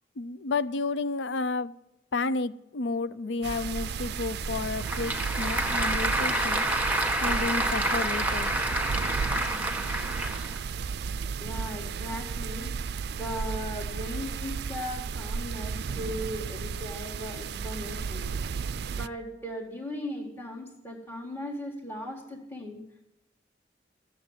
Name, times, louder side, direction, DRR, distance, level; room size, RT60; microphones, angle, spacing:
voice 1, 0.2-1.7 2.1-6.6 7.2-8.5, left 3 dB, 85° left, 0.5 m, -31 dB
sound 1, 3.4-19.1, right 5 dB, 60° right, 0.4 m, -34 dB
Applause / Crowd, 4.4-10.6, right 1 dB, 10° right, 1.7 m, -28 dB
voice 2, 11.4-12.8 13.1-18.3 18.9-22.8, equal, 15° left, 1.7 m, -38 dB
15.0 x 7.2 x 9.5 m
head